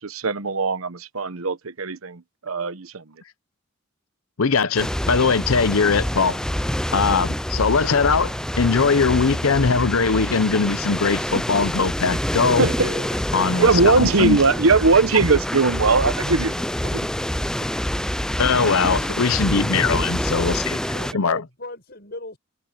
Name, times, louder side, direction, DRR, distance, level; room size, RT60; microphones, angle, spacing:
voice 1, 0.0-3.0 12.6-13.1 13.6-16.5 16.9-17.0, right 4 dB, 85° right, 1.0 m, -20 dB
voice 2, 4.4-6.4 6.9-12.7 13.3-14.4 18.4-20.6 21.1-21.4, left 5 dB, 85° left, 0.8 m, -20 dB
sound 1, 4.8-21.1, equal, 5° left, 0.5 m, -26 dB
voice 3, 13.1-14.7 19.0-19.3 20.3-20.5 20.9-22.4, left 2 dB, 50° left, 7.6 m, -40 dB
head